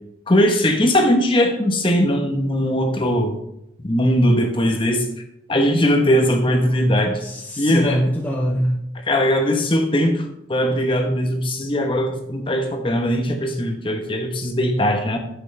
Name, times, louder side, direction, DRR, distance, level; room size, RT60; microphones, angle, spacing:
voice 1, 0.3-3.4 3.8-5.1 5.5-7.1 7.6-8.0 9.1-15.2, equal, 25° left, 4 dB, 1.0 m, -19 dB
voice 2, 6.5-8.8, equal, 10° left, -2 dB, 0.7 m, -24 dB
8.7 x 8.1 x 3.3 m, 0.81 s
head